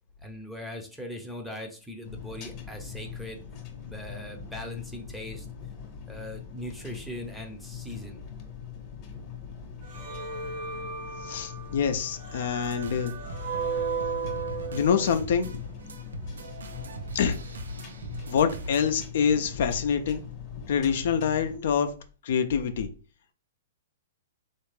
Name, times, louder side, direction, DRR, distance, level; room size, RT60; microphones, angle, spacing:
voice 1, 0.2-3.4 3.8-5.5 6.1-8.2, equal, 5° right, 4 dB, 0.6 m, -40 dB
sound 1, 2.0-21.6, left 7 dB, 35° left, 0.9 m, -42 dB
sound 2, 9.8-15.1, right 5 dB, 60° right, 1.0 m, -35 dB
voice 2, 11.2-13.1 14.7-15.6 17.1-17.4 18.3-20.2 20.7-21.9 22.2-22.9, left 7 dB, 65° left, 8 dB, 0.4 m, -26 dB
sound 3, 12.6-19.0, right 2 dB, 85° right, 0.5 m, -41 dB
3.4 x 2.5 x 3.2 m, 0.36 s
hypercardioid pair, 130°, 0 cm